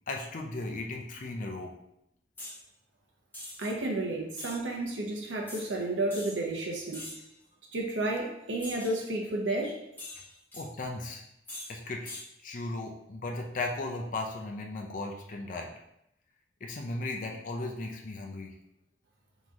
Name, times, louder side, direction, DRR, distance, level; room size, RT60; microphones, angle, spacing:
voice 1, 0.1-1.7 10.5-11.2 11.7-15.7 16.6-18.5, left 2 dB, 45° left, 1 dB, 0.5 m, -36 dB
sound 1, 2.4-2.6 3.3-3.7 4.3-4.6 5.5-5.7 6.1-6.4 6.9-7.3 8.6-9.0 10.0-10.6 11.5-11.7 12.0-12.3, left 1 dB, 10° left, 1.2 m, -43 dB
voice 2, 3.6-7.0 7.7-9.8, right 2 dB, 90° right, 1 dB, 0.9 m, -31 dB
3.9 x 3.0 x 3.6 m, 0.80 s
head